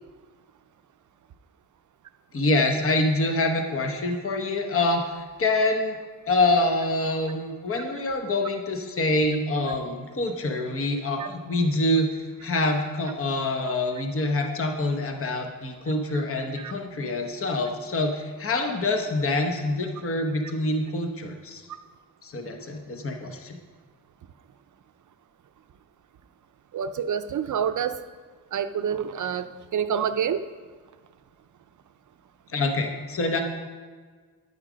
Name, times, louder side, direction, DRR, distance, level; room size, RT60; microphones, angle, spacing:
voice 1, 2.3-6.0 6.3-21.6 22.2-23.6 32.5-33.4, left 2 dB, 40° left, 4 dB, 1.0 m, -26 dB
voice 2, 26.7-28.0 28.5-30.4, right 8 dB, 60° right, 10 dB, 0.5 m, -27 dB
9.7 x 8.6 x 5.0 m, 1.5 s
wide cardioid pair, 120°, 35 cm